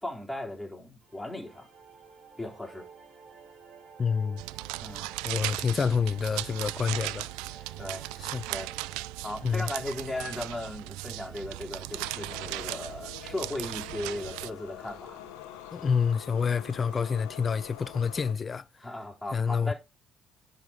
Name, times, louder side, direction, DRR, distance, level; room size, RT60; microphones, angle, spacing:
voice 1, 0.0-1.7 2.4-2.9 4.8-5.1 7.8-8.0 8.5-8.7 9.2-15.2 18.8-19.7, left 1 dB, 5° left, 3.7 m, -37 dB
sound 1, 1.0-12.1, right 6 dB, 55° right, 2.4 m, -52 dB
voice 2, 4.0-4.4 5.2-7.3 8.2-8.4 9.4-9.7 15.7-18.6 19.3-19.7, left 6 dB, 35° left, 0.3 m, -28 dB
sound 2, 4.4-14.5, right 20 dB, 75° right, 0.3 m, -37 dB
sound 3, 11.9-18.3, left 11 dB, 75° left, 1.0 m, -45 dB
10.5 x 4.0 x 5.0 m
hypercardioid pair, 50°, 0 cm